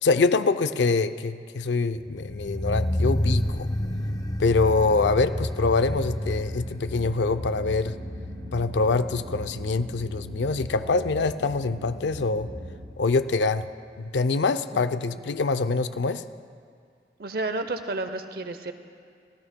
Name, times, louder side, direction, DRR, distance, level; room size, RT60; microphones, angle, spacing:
voice 1, 0.0-3.7 4.4-8.0 8.5-12.5 13.0-13.7 14.0-16.2, left 3 dB, 90° left, 12 dB, 0.5 m, -24 dB
sound 1, 1.9-13.0 13.2-13.3, left 1 dB, 20° left, 0.5 m, -31 dB
sound 2, 5.9-12.9, equal, 85° right, 2.1 m, -41 dB
voice 2, 14.7-15.3 17.2-18.7, right 2 dB, 60° right, 9 dB, 0.7 m, -32 dB
29.0 x 14.0 x 2.2 m, 2.2 s
head